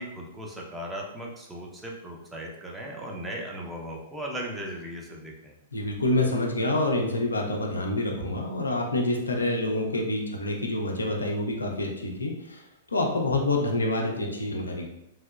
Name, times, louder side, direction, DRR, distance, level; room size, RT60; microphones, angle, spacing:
voice 1, 0.0-5.5, right 1 dB, 10° right, -2 dB, 0.6 m, -37 dB
voice 2, 5.7-12.6 12.9-14.9, left 2 dB, 80° left, 1 dB, 0.5 m, -27 dB
3.2 x 2.8 x 2.3 m, 0.86 s
figure-of-eight pair, 110°, 0 cm